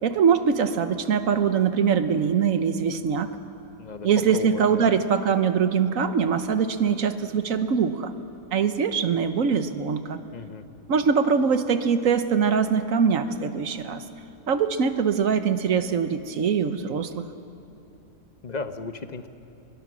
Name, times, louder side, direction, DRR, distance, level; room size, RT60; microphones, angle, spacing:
voice 1, 0.0-3.3 4.0-8.1 8.5-10.2 10.9-14.0 14.5-17.3, right 6 dB, 70° right, 9 dB, 1.4 m, -23 dB
voice 2, 3.8-4.9 10.3-10.6 18.4-19.3, left 4 dB, 35° left, 9 dB, 0.9 m, -35 dB
25.5 x 22.5 x 6.2 m, 2.8 s
omnidirectional pair, 1.5 m